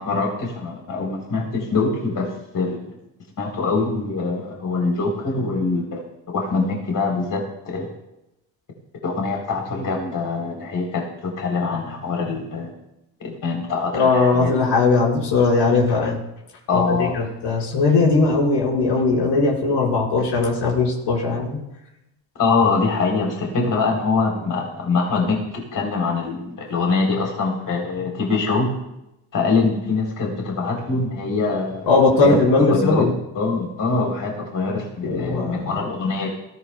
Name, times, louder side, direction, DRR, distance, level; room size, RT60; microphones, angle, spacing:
voice 1, 0.0-2.9 3.4-6.0 6.3-7.9 9.0-12.7 13.2-14.5 16.7-17.1 22.4-28.7 29.3-31.9 32.2-32.4 32.7-33.1 33.3-36.3, left 4 dB, 45° left, 0 dB, 3.5 m, -23 dB
voice 2, 13.9-16.2 16.7-21.6 31.9-33.1 35.0-35.7, left 3 dB, 75° left, -3 dB, 5.0 m, -19 dB
17.0 x 14.0 x 2.2 m, 0.88 s
supercardioid pair, 75°, 43 cm